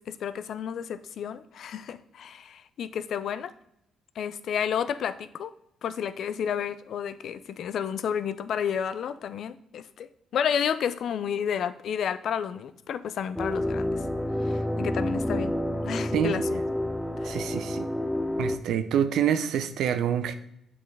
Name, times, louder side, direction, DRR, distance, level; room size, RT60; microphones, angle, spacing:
voice 1, 0.0-3.5 4.2-5.5 5.8-13.9 14.4-15.5 15.8-16.4 17.2-17.4, left 8 dB, 65° left, 0.4 m, -31 dB
sound 1, 13.3-18.6, left 1 dB, 10° left, 0.6 m, -29 dB
voice 2, 17.2-17.9 18.4-20.3, right 9 dB, 80° right, 0.5 m, -26 dB
7.5 x 4.2 x 3.4 m
cardioid pair, 90°, 0 cm